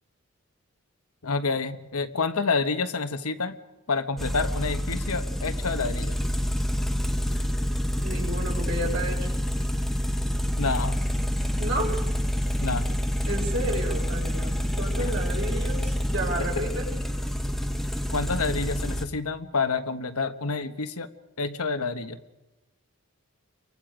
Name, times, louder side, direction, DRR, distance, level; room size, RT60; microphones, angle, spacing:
voice 1, 1.2-3.6 3.9-6.1 10.6-11.0 12.6-12.8 18.1-21.1 21.4-22.2, left 4 dB, 85° left, 9 dB, 1.3 m, -28 dB
sound 1, 4.2-19.0, equal, ahead, 1.1 m, -27 dB
voice 2, 8.0-9.3 11.6-12.0 13.3-16.9, right 1 dB, 50° right, 1 dB, 4.7 m, -32 dB
29.5 x 23.5 x 5.1 m, 1.1 s
head